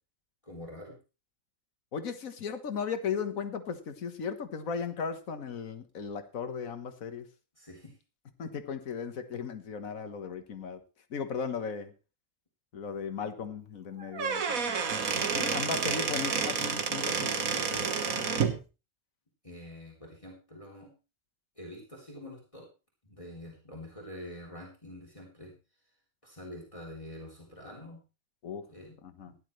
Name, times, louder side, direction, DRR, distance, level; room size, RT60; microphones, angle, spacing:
voice 1, 0.4-1.0 7.6-7.9 19.4-20.9 21.6-22.7 23.0-25.5 26.2-28.0 28.7-29.0 29.2-29.4, left 1 dB, 25° left, -2 dB, 3.4 m, -46 dB
voice 2, 1.9-7.3 8.4-10.8 11.1-11.9 12.7-14.8 15.2-18.6 28.4-28.7 29.0-29.3, left 6 dB, 75° left, 8 dB, 1.7 m, -37 dB
Squeak / Wood, 14.0-18.6, right 6 dB, 80° right, 1.7 m, -30 dB
16.0 x 11.0 x 3.2 m, 0.31 s
omnidirectional pair, 1.4 m